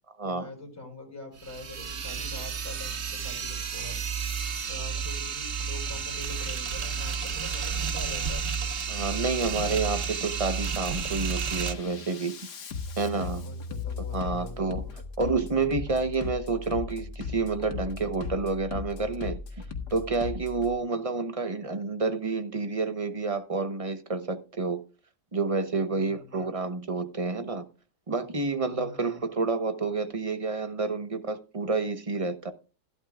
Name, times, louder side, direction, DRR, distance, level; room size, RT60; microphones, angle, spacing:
voice 1, 0.2-4.0 4.7-8.4 9.5-9.7 13.4-14.9 20.8-21.2 25.9-26.3 28.7-29.2, left 2 dB, 10° left, 4.3 m, -44 dB
sound 1, 1.4-11.7, right 6 dB, 45° right, 1.2 m, -31 dB
Bass drum, 4.9-5.1 5.6-6.1 6.9-7.1 7.6-8.1 8.9-9.1 9.6-10.1 10.5-20.7, left 5 dB, 85° left, 2.0 m, -38 dB
voice 2, 8.9-12.3 13.0-13.4 14.1-14.8 15.2-19.4 19.9-24.8 25.3-27.7 28.1-32.5, right 3 dB, 25° right, 0.8 m, -29 dB
15.0 x 12.0 x 2.4 m
omnidirectional pair, 1.7 m